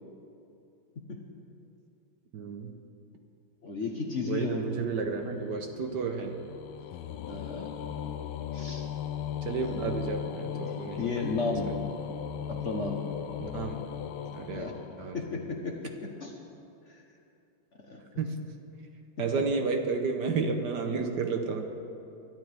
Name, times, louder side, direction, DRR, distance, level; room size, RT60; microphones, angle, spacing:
voice 1, 2.3-2.7 4.2-6.4 9.4-11.1 11.6-11.7 13.4-13.8 14.3-14.7 15.0-15.2 18.2-18.4 19.2-21.6, right 4 dB, 65° right, 5 dB, 1.4 m, -31 dB
voice 2, 3.6-4.6 7.3-7.7 8.5-8.9 9.6-9.9 11.0-11.7 12.5-13.0 14.5-14.7 15.1-16.4 16.9-17.0 17.8-18.2, left 4 dB, 45° left, 1 dB, 1.1 m, -34 dB
sound 1, 4.6-15.5, left 9 dB, 90° left, 1.5 m, -38 dB
23.0 x 12.5 x 3.5 m, 2.8 s
omnidirectional pair, 2.2 m